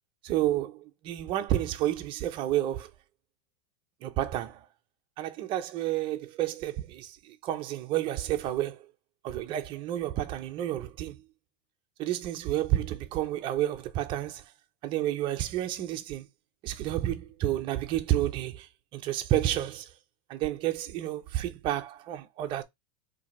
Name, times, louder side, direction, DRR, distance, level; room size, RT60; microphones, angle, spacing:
voice 1, 0.2-2.9 4.0-4.6 5.2-8.8 9.2-11.2 12.0-14.4 14.8-16.3 16.6-19.9 20.3-22.6, right 13 dB, 25° right, 0.4 m, -30 dB
2.7 x 2.6 x 4.1 m
supercardioid pair, 155°, 21 cm